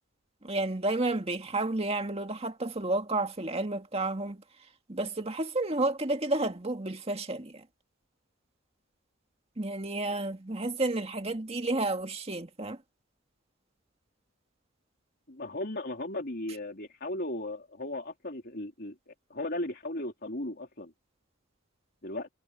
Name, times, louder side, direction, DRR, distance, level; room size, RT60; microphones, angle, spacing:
voice 1, 0.4-4.4 4.9-7.6 9.6-12.8, right 2 dB, 30° right, 2.0 m, -31 dB
voice 2, 15.3-20.9 22.0-22.3, left 1 dB, 50° left, 3.5 m, -36 dB
head